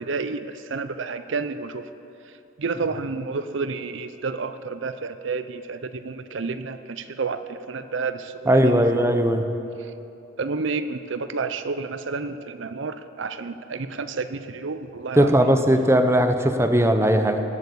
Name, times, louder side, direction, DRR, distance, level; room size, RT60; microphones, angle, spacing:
voice 1, 0.0-1.9 2.6-9.0 9.8-9.9 10.4-15.5, right 4 dB, 65° right, 11 dB, 0.6 m, -30 dB
voice 2, 8.5-9.4 15.2-17.4, right 1 dB, 15° right, 7 dB, 0.8 m, -18 dB
18.5 x 8.1 x 8.5 m, 2.8 s
head